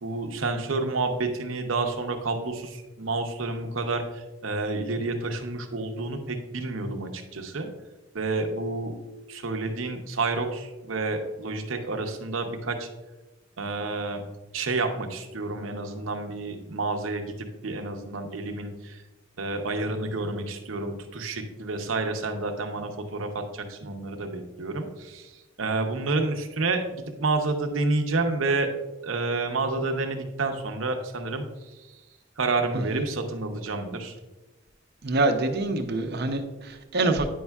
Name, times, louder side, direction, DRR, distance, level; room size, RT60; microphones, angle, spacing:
voice 1, 0.0-7.7 8.1-8.9 9.3-12.9 13.6-14.2 14.5-19.0 19.4-28.7 29.0-31.4 32.4-34.2, right 3 dB, 80° right, 4 dB, 0.8 m, -29 dB
voice 2, 32.7-33.1 35.0-37.3, right 2 dB, 55° right, 6 dB, 0.6 m, -26 dB
9.2 x 5.4 x 2.3 m, 1.1 s
head